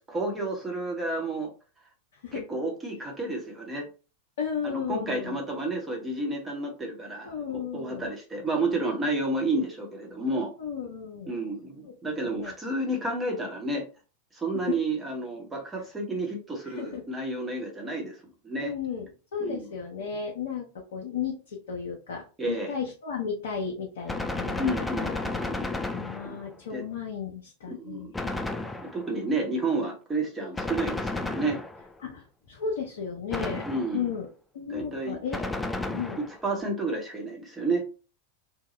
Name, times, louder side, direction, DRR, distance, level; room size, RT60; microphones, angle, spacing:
voice 1, 0.1-1.5 2.3-3.9 4.6-10.5 11.3-13.9 14.3-18.2 18.4-18.7 19.4-19.7 22.4-22.7 24.6-25.8 26.2-26.4 26.7-26.8 27.8-28.1 28.9-31.6 33.7-34.1 34.7-35.2 36.4-37.8, right 2 dB, 15° right, 1 dB, 0.9 m, -31 dB
voice 2, 4.4-5.4 7.2-8.1 10.6-11.3 11.8-11.9 12.2-12.5 14.6-14.8 16.7-17.0 17.8-17.9 18.6-20.7 20.9-25.2 25.9-28.1 32.0-33.6 33.9-34.3 34.5-35.5 35.8-36.2, left 6 dB, 60° left, -1 dB, 0.6 m, -34 dB
Gunshot gunfire, 24.1-26.6 28.1-29.2 30.6-32.0 33.3-34.1 35.3-36.5, left 2 dB, 10° left, 0.3 m, -33 dB
2.7 x 2.2 x 3.0 m, 0.35 s
figure-of-eight pair, 90°, 0 cm